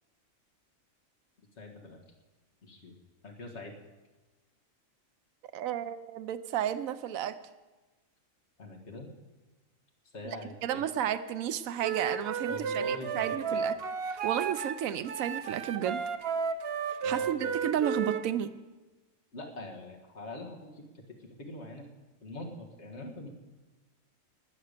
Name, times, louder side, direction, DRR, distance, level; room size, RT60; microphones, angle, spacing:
voice 1, 1.6-2.0 2.6-2.9 3.2-3.7 8.6-9.1 10.0-10.8 12.5-13.6 17.0-17.5 19.3-20.8 21.2-21.9 22.2-23.3, left 2 dB, 55° left, 1 dB, 2.0 m, -43 dB
voice 2, 5.5-7.4 10.6-13.7 14.1-16.0 17.0-18.5, right 10 dB, 90° right, 11 dB, 1.0 m, -32 dB
Wind instrument woodwind instrument, 11.8-14.8 15.0-18.2, right 6 dB, 55° right, 0.9 m, -33 dB
19.0 x 6.8 x 6.6 m, 1.2 s
omnidirectional pair, 1.4 m